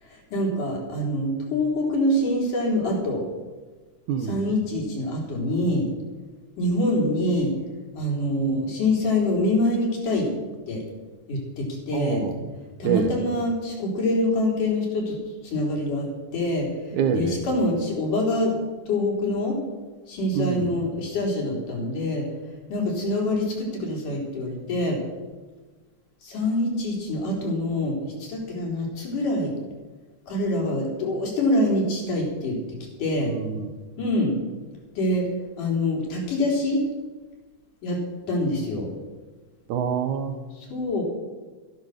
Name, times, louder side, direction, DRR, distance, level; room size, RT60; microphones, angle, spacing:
voice 1, 0.0-3.2 4.2-5.9 6.6-7.5 7.9-10.3 10.7-10.8 11.3-12.2 12.8-15.2 15.4-18.5 18.9-19.6 20.1-22.2 22.7-25.0 26.2-29.5 30.3-32.6 33.0-33.3 34.0-34.4 35.0-35.3 35.6-36.8 37.8-38.0 38.3-38.9 40.6-41.0, left 1 dB, 85° left, -1 dB, 5.2 m, -25 dB
voice 2, 11.9-12.3 12.8-13.1 16.9-17.4 20.3-20.7 33.3-33.7 39.7-40.4, right 7 dB, 75° right, 9 dB, 2.6 m, -26 dB
14.0 x 12.5 x 6.5 m, 1.3 s
omnidirectional pair, 3.6 m